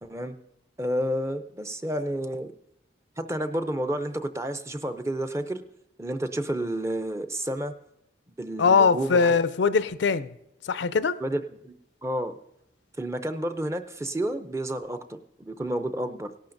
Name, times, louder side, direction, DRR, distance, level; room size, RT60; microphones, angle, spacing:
voice 1, 0.0-0.3 0.8-2.5 3.2-5.6 6.0-7.7 8.4-9.4 11.2-11.7 12.0-12.3 13.0-15.0 15.4-16.3, right 1 dB, 15° right, 0.5 m, -30 dB
voice 2, 8.6-10.3 10.6-11.2, left 5 dB, 70° left, 0.4 m, -21 dB
18.0 x 11.5 x 2.6 m
head